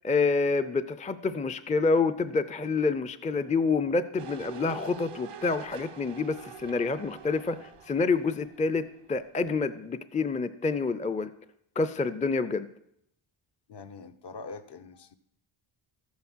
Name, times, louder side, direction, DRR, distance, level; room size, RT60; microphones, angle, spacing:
voice 1, 0.0-8.8 9.1-11.3 11.8-12.7, left 4 dB, 15° left, 12 dB, 0.5 m, -27 dB
sound 1, 4.2-9.1 9.5-9.6, right 7 dB, 90° right, 1.2 m, -46 dB
voice 2, 13.7-15.2, left 4 dB, 55° left, 8 dB, 1.0 m, -43 dB
13.0 x 9.5 x 6.2 m, 0.74 s
cardioid pair, 90°, 50 cm